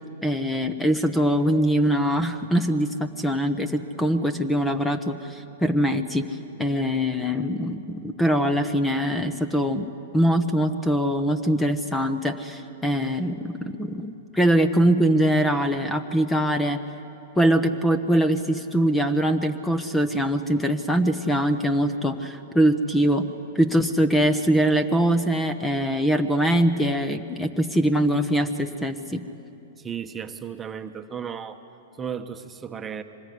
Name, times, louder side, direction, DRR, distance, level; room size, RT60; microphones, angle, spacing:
voice 1, 0.2-6.3 6.6-9.9 10.1-16.8 17.4-23.3 23.5-29.2, equal, 10° left, 9 dB, 1.1 m, -23 dB
voice 2, 29.8-31.6 32.0-33.0, right 7 dB, 20° right, 6 dB, 1.2 m, -34 dB
25.0 x 20.0 x 9.5 m, 2.8 s
hypercardioid pair, 120°, 0 cm